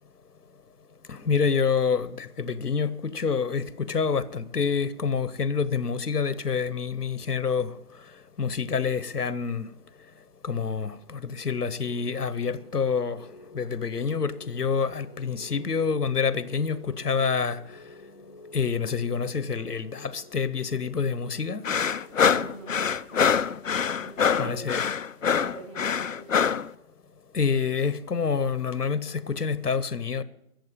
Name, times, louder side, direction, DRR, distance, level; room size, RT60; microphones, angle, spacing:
voice 1, 1.1-7.7 8.4-9.7 10.4-13.3 13.5-17.6 18.5-21.6 24.4-24.8 27.3-30.2, left 5 dB, 80° left, 1.1 m, -27 dB
sound 1, 11.9-24.6, left 2 dB, 25° left, 0.9 m, -51 dB
sound 2, 21.6-26.7, left 7 dB, 60° left, 0.5 m, -24 dB
voice 2, 22.2-23.4 24.0-24.6 25.2-26.5, right 3 dB, 20° right, 1.8 m, -43 dB
14.0 x 7.7 x 9.2 m
figure-of-eight pair, 160°, 46 cm